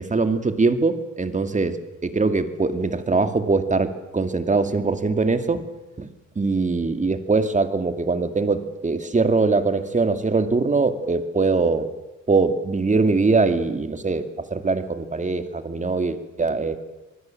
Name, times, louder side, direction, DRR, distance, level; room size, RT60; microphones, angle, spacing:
voice 1, 0.0-1.8 2.0-5.6 6.0-6.1 6.4-11.9 12.3-14.3 14.5-16.8, right 3 dB, 25° right, 9 dB, 2.4 m, -22 dB
25.5 x 20.0 x 7.7 m, 1.0 s
cardioid pair, 90°, 30 cm